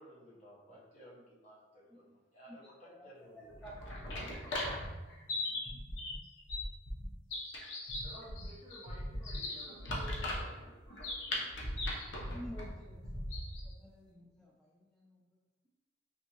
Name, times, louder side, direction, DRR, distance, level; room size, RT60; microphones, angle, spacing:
voice 1, 0.0-2.0 2.3-3.5, equal, 40° left, -7 dB, 0.9 m, -56 dB
sound 1, 3.5-13.7, left 1 dB, 85° left, 0.7 m, -39 dB
voice 2, 3.6-4.2 12.2-13.0 13.6-15.2, equal, 5° left, -5 dB, 0.3 m, -51 dB
voice 3, 8.0-11.1, equal, 30° right, -6 dB, 1.0 m, -53 dB
3.4 x 2.6 x 2.9 m, 1.1 s
head